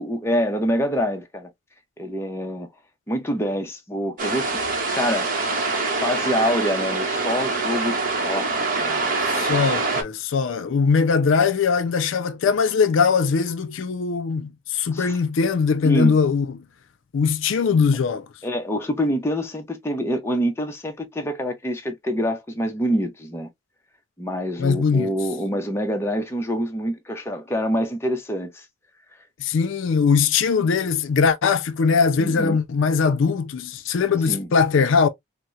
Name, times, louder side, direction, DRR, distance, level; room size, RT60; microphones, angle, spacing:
voice 1, 0.0-1.5 2.0-2.7 3.1-5.3 6.0-8.0 8.2-8.5 8.8-9.1 14.9-15.2 15.8-16.2 18.4-23.5 24.2-28.6 32.2-32.6 34.3-34.5, equal, 10° left, 0.5 m, -26 dB
sound 1, 4.2-10.0, right 3 dB, 40° right, 0.8 m, -24 dB
voice 2, 9.3-16.7 17.1-18.3 24.6-25.1 29.4-35.1, left 5 dB, 70° left, 0.4 m, -21 dB
4.1 x 2.0 x 2.3 m
head